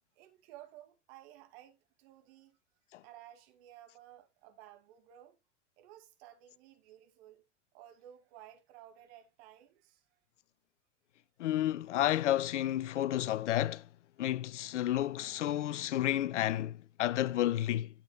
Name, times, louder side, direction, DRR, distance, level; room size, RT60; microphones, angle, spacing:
voice 1, 0.1-2.6 3.0-5.4 5.8-7.4 7.7-10.2, right 12 dB, 55° right, 2.4 m, -55 dB
voice 2, 11.4-13.8 14.2-17.9, left 13 dB, 75° left, 0.6 m, -31 dB
12.5 x 7.2 x 2.3 m
figure-of-eight pair, 85°, 37 cm